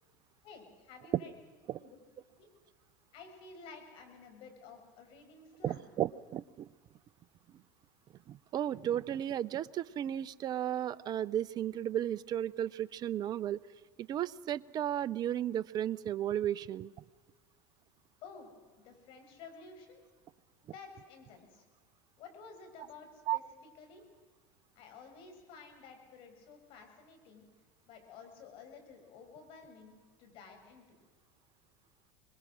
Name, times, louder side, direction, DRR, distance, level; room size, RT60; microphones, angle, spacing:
voice 1, 0.4-1.3 1.7-2.0 2.4-2.5 3.1-5.9 18.2-18.5 18.8-20.0 20.7-21.6 22.2-23.4 23.8-24.0 24.8-27.4 27.9-30.9, left 5 dB, 55° left, 5 dB, 6.0 m, -52 dB
voice 2, 5.6-6.7 8.3-13.6 14.1-16.9 23.3-23.4, right 11 dB, 40° right, 18 dB, 0.7 m, -34 dB
26.0 x 21.5 x 6.3 m, 1.4 s
hypercardioid pair, 90°, 11 cm